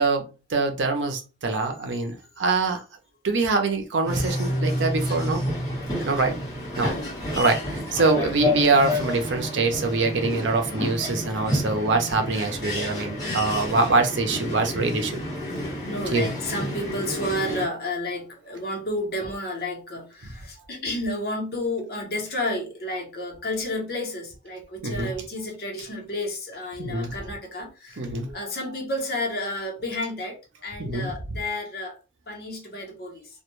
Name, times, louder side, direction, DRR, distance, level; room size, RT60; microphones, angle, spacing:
voice 1, 0.0-2.8 3.2-5.4 6.0-6.4 6.8-6.9 7.4-15.2 16.1-16.3 24.8-25.1 26.8-27.1 28.0-28.4 30.8-31.1, right 3 dB, 85° right, 0.6 m, -24 dB
sound 1, 4.0-17.7, left 1 dB, 20° left, 1.1 m, -30 dB
voice 2, 5.9-6.4 6.7-7.3 15.9-28.0 28.3-30.4 30.6-32.0 32.3-33.3, left 1 dB, 55° left, 0.8 m, -31 dB
2.3 x 2.2 x 3.0 m
head